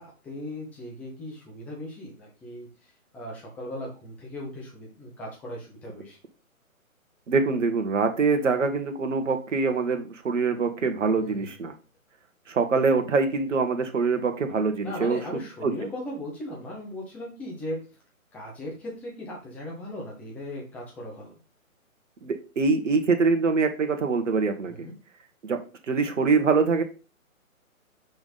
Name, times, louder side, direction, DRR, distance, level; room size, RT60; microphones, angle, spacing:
voice 1, 0.0-6.2 11.2-11.6 14.8-17.8 18.3-21.3 24.6-24.9, left 1 dB, 5° left, -2 dB, 0.7 m, -38 dB
voice 2, 7.3-11.7 12.5-15.2 15.6-15.7 22.2-24.9 25.4-25.6 25.9-26.8, right 4 dB, 55° right, 6 dB, 1.4 m, -24 dB
5.9 x 5.4 x 4.1 m, 0.33 s
figure-of-eight pair, 140°, 43 cm